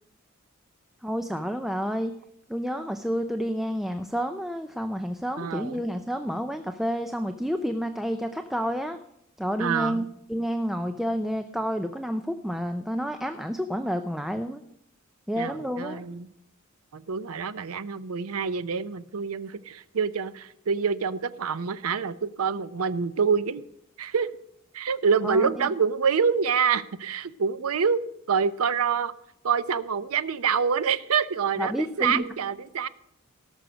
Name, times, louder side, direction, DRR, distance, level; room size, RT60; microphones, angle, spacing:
voice 1, 1.0-2.1 2.5-9.0 9.4-14.6 15.3-16.0 25.2-25.7 31.6-32.2, equal, ahead, 7 dB, 0.4 m, -30 dB
voice 2, 5.4-5.8 9.6-10.1 15.4-16.3 16.9-23.6 24.0-24.3 24.7-28.0 28.3-29.1 29.4-32.9, right 6 dB, 85° right, 15 dB, 0.6 m, -26 dB
17.5 x 6.4 x 5.2 m, 0.77 s
head